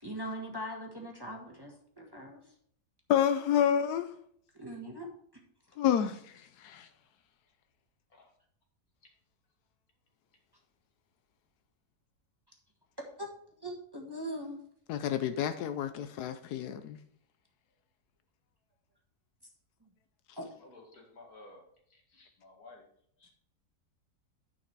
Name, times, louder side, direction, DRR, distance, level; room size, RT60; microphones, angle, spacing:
voice 1, 0.0-2.4 4.6-5.1 13.2-13.3 13.6-14.6 20.4-20.5, equal, 15° right, 1.4 m, -40 dB
voice 2, 3.1-4.1 5.8-6.9 14.9-17.0, left 9 dB, 85° left, 1.2 m, -29 dB
voice 3, 20.6-21.6 22.1-22.8 23.2-23.3, left 2 dB, 65° left, 2.5 m, -54 dB
9.9 x 5.8 x 4.6 m
omnidirectional pair, 1.7 m